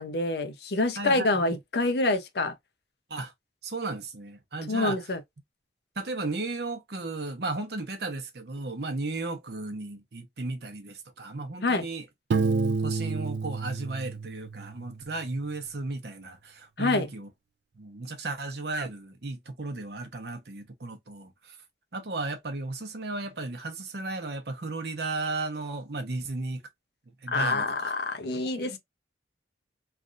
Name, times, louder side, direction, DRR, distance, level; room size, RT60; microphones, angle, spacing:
voice 1, 0.0-2.5 4.7-5.2 11.6-11.8 16.8-17.1 27.3-28.8, left 2 dB, 65° left, 0.6 m, -26 dB
voice 2, 1.0-1.6 3.1-3.3 3.6-5.0 6.0-12.0 12.3-17.3 17.7-21.6 21.9-26.6 27.2-27.9 28.4-28.8, right 2 dB, 65° right, 0.9 m, -35 dB
Piano, 12.3-15.1, right 4 dB, 80° right, 0.4 m, -29 dB
3.3 x 2.4 x 2.4 m
head